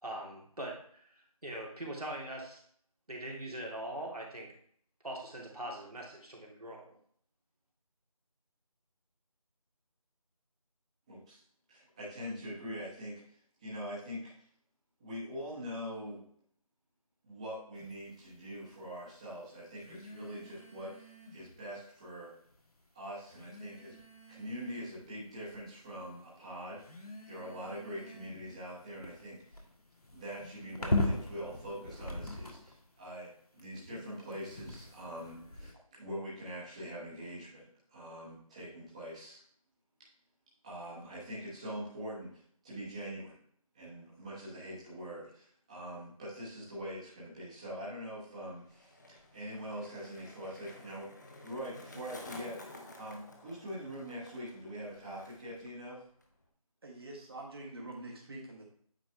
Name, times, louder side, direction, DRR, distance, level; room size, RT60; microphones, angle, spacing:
voice 1, 0.0-2.6 3.1-4.5 5.0-6.9, right 1 dB, 90° right, -1 dB, 2.3 m, -42 dB
voice 2, 11.1-11.4 11.7-13.2 13.6-14.3 15.0-16.2 17.2-22.3 22.9-24.0 24.3-27.0 27.3-29.6 30.1-37.6 37.9-39.4 40.6-43.3 43.7-51.1 51.4-56.0, equal, 10° right, -8 dB, 1.0 m, -43 dB
sound 1, 17.7-18.0 19.8-21.6 22.5-22.6 23.3-25.0 25.5-26.0 26.8-32.8 33.6-35.7, left 2 dB, 90° left, 1.6 m, -40 dB
Skateboard, 48.1-55.7 56.0-56.5, left 2 dB, 30° left, 0.9 m, -52 dB
voice 3, 56.8-58.6, right 2 dB, 40° right, -1 dB, 1.4 m, -45 dB
8.8 x 4.6 x 3.3 m, 0.62 s
figure-of-eight pair, 165°, 19 cm